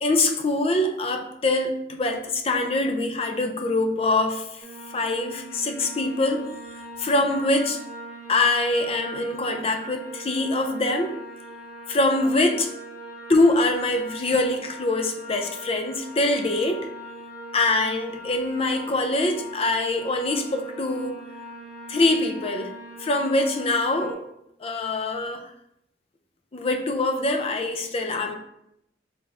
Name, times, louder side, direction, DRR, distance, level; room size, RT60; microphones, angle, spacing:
voice 1, 0.0-4.6 4.9-6.5 7.0-7.8 8.3-11.1 11.9-12.7 13.3-16.9 17.5-21.2 21.9-22.7 23.0-24.2 24.6-25.5 26.5-28.4, left 2 dB, 35° left, 5 dB, 0.5 m, -24 dB
sound 1, 4.6-24.1, equal, 5° right, 1.6 m, -41 dB
3.9 x 3.6 x 3.6 m, 0.80 s
head